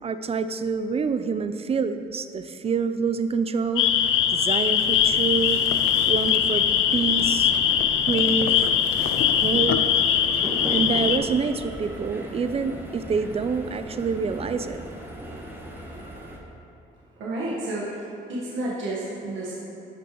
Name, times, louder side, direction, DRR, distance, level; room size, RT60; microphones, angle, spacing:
voice 1, 0.0-3.9 4.3-5.6 6.0-7.5 8.0-8.7 9.4-9.8 10.3-10.4 10.7-14.8, right 5 dB, 30° right, 10 dB, 0.4 m, -27 dB
sound 1, 3.8-11.2, left 9 dB, 85° left, 0.5 m, -21 dB
sound 2, 4.9-16.4, right 1 dB, 10° right, 1.0 m, -38 dB
voice 2, 17.2-18.0 18.3-19.6, right 1 dB, 75° right, -6 dB, 1.2 m, -30 dB
11.0 x 5.8 x 2.9 m, 2.8 s
cardioid pair, 90°, 20 cm